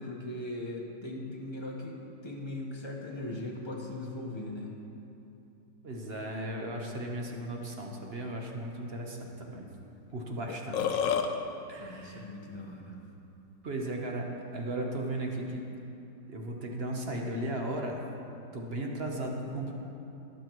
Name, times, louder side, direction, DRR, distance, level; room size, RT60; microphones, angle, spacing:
voice 1, 0.0-2.0 2.2-4.7 10.7-10.8 11.8-13.0, left 1 dB, 15° left, -2 dB, 1.1 m, -39 dB
voice 2, 5.8-9.7 10.1-11.0 11.7-12.3 13.6-14.3 14.5-15.6 16.3-18.0 18.5-19.7, right 1 dB, 40° right, 0 dB, 1.1 m, -36 dB
Burping eructation, 10.1-10.2 10.5-11.3, left 7 dB, 85° left, 1.3 m, -28 dB
20.5 x 7.7 x 3.1 m, 2.8 s
omnidirectional pair, 2.0 m